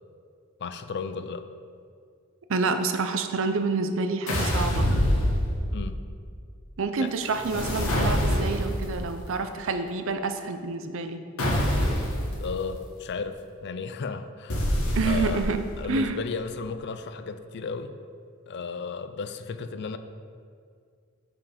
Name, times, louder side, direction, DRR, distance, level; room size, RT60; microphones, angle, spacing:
voice 1, 0.6-1.5 5.7-6.0 7.0-7.1 12.4-14.8 15.0-15.4 15.8-17.9 18.5-20.0, left 5 dB, 55° left, 10 dB, 0.4 m, -34 dB
voice 2, 2.5-4.9 6.8-11.2 14.9-16.2, right 4 dB, 65° right, 8 dB, 0.6 m, -28 dB
sound 1, 4.3-5.9 7.3-8.8 11.4-12.2 14.5-15.6, equal, 85° left, 1.6 m, -25 dB
7.1 x 5.9 x 5.0 m, 2.2 s
head